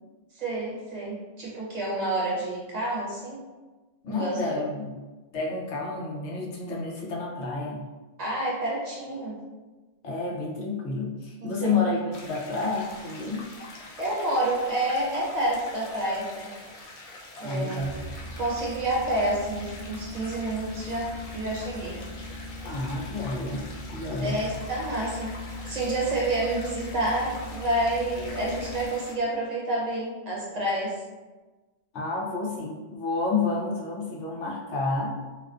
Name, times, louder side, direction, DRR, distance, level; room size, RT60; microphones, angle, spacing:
voice 1, 0.3-3.4 4.1-4.5 8.2-9.3 11.4-11.7 14.0-16.5 17.4-17.8 18.4-22.0 24.2-25.3 25.7-30.9, right 1 dB, 45° right, -5 dB, 0.7 m, -29 dB
voice 2, 4.0-5.0 5.3-7.8 10.0-13.5 17.4-18.0 22.6-23.6 23.9-24.4 31.9-35.2, left 3 dB, 85° left, -2 dB, 0.9 m, -30 dB
sound 1, 12.1-29.1, left 2 dB, 65° left, 0.3 m, -45 dB
sound 2, 17.8-29.2, left 1 dB, 40° left, 0.7 m, -40 dB
2.5 x 2.3 x 2.4 m, 1.2 s
omnidirectional pair, 1.1 m